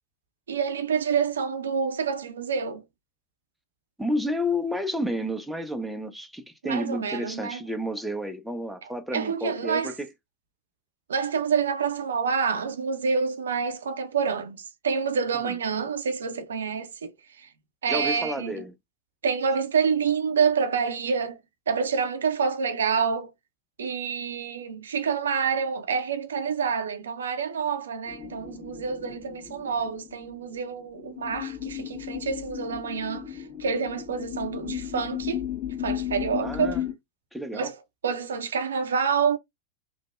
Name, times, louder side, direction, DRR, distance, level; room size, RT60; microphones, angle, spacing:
voice 1, 0.5-2.8 6.6-7.6 9.1-10.0 11.1-17.1 17.4-17.5 17.8-18.6 19.2-21.4 21.7-23.3 23.8-35.5 35.8-36.8 37.5-37.8 38.0-39.4, right 6 dB, 65° right, 0.5 m, -27 dB
voice 2, 4.0-10.1 15.4-15.5 17.9-18.7 36.4-36.8 37.3-37.7, equal, ahead, 0.4 m, -31 dB
sound 1, 28.1-36.9, left 11 dB, 25° left, 1.2 m, -35 dB
3.3 x 2.0 x 2.2 m
figure-of-eight pair, 90°, 0 cm